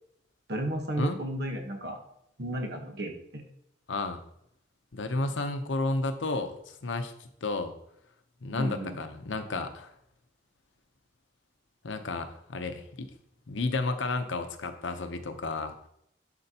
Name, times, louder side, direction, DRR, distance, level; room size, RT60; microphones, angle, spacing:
voice 1, 0.5-2.0 2.4-3.4 8.6-9.0, right 1 dB, 60° right, 3 dB, 1.2 m, -33 dB
voice 2, 3.9-4.2 4.9-7.7 8.4-9.9 11.8-13.1 13.5-15.9, left 3 dB, 85° left, 7 dB, 0.8 m, -32 dB
11.0 x 4.4 x 2.9 m, 0.74 s
head